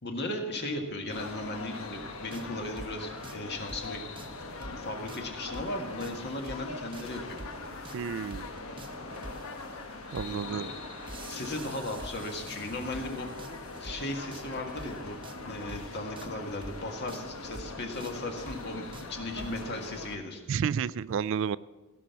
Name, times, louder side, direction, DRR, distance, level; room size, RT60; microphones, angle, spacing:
voice 1, 0.0-4.0 4.7-7.8 10.2-10.7 11.3-13.3 13.8-15.2 15.4-18.8 19.1-20.4, left 1 dB, 55° left, 3 dB, 1.8 m, -37 dB
sound 1, 1.1-20.2, left 3 dB, 85° left, 1.1 m, -42 dB
sound 2, 2.3-19.6, right 1 dB, 25° right, 0.9 m, -47 dB
voice 2, 7.9-8.5 10.1-10.7 20.5-21.6, right 7 dB, 65° right, 18 dB, 0.3 m, -31 dB
17.0 x 6.2 x 7.1 m, 1.2 s
head